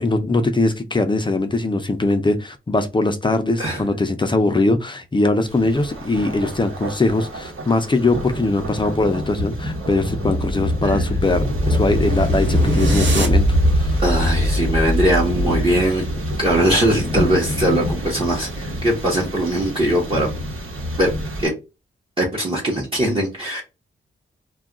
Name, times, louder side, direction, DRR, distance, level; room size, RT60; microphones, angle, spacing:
voice 1, 0.0-14.0, left 2 dB, 25° left, 0.4 m, -21 dB
Thunder, 5.5-21.5, equal, 80° right, 1.2 m, -28 dB
sound 1, 9.8-15.9, equal, 65° right, 0.9 m, -21 dB
voice 2, 14.0-16.1 16.4-20.3 21.0-21.1 21.4-21.5 22.2-23.6, right 1 dB, 25° right, 0.8 m, -20 dB
2.3 x 2.2 x 3.7 m
wide cardioid pair, 105°, 21 cm